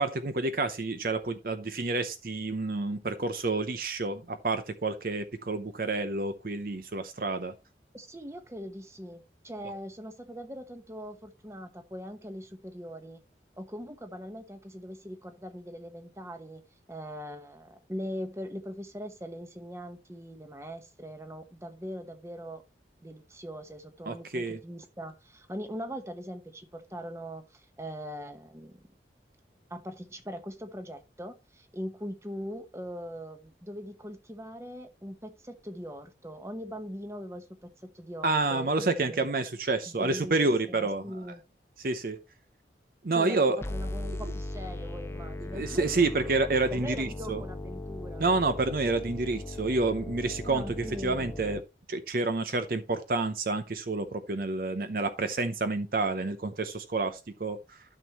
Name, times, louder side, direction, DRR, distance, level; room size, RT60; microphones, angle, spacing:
voice 1, 0.0-7.5 24.1-24.6 38.2-41.0 41.8-42.2 43.0-43.6 44.0-44.2 45.5-47.4 48.2-51.6 51.9-57.8, right 3 dB, 55° right, 0.7 m, -29 dB
voice 2, 7.9-13.2 13.6-16.6 16.9-22.6 23.0-28.9 29.7-39.3 39.9-41.4 43.1-46.1 46.7-48.2 50.5-51.4, equal, 15° right, 1.1 m, -41 dB
sound 1, 43.6-51.6, left 1 dB, 15° left, 0.6 m, -38 dB
12.5 x 6.3 x 3.0 m
head